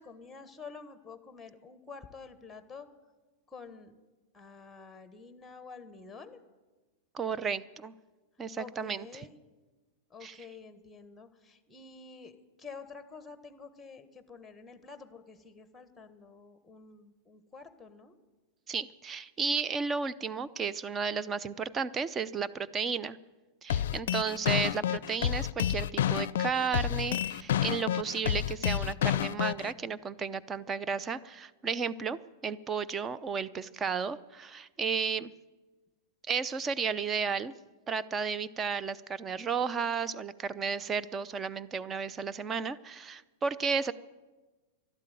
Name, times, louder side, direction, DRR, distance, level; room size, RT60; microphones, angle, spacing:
voice 1, 0.0-2.9 3.5-3.9 4.3-6.4 8.6-9.4 10.1-18.2, left 5 dB, 10° left, 11 dB, 1.4 m, -49 dB
voice 2, 7.1-7.9 8.4-9.1 10.2-10.4 18.7-23.2 23.6-35.3 36.3-37.5 37.9-43.9, right 5 dB, 25° right, 15 dB, 0.6 m, -33 dB
sound 1, 23.7-29.7, left 11 dB, 70° left, 0.4 m, -29 dB
12.0 x 12.0 x 9.3 m, 1.2 s
hypercardioid pair, 110°, 0 cm